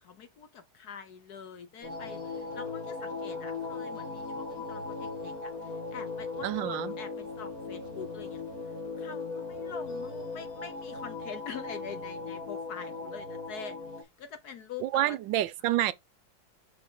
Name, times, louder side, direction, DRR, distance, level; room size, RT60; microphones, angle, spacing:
voice 1, 0.0-8.4 9.0-15.2, left 7 dB, 60° left, 1.2 m, -45 dB
sound 1, 1.8-14.0, left 3 dB, 40° left, 3.1 m, -38 dB
voice 2, 6.4-6.9 14.8-15.9, right 14 dB, 75° right, 1.1 m, -28 dB
6.0 x 4.9 x 3.7 m
omnidirectional pair, 2.4 m